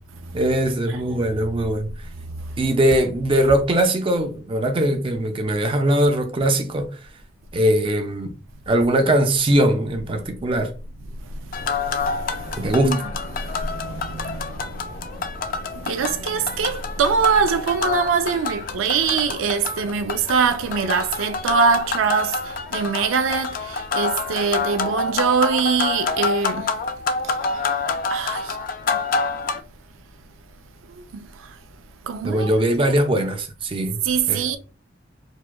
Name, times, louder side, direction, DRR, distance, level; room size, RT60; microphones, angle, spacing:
voice 1, 0.3-1.9 2.6-6.9 7.5-8.3 8.7-10.7 12.6-13.0 32.2-34.0 34.3-34.6, right 1 dB, 25° right, 0.4 m, -20 dB
sound 1, 11.5-29.6, left 4 dB, 45° left, 0.3 m, -27 dB
voice 2, 11.8-13.0 13.4-14.8 15.7-26.7 27.2-27.3 28.1-28.6 28.9-29.0 31.1-31.3 32.1-32.5 34.0-34.6, right 6 dB, 85° right, 0.4 m, -23 dB
4.6 x 2.2 x 2.2 m
head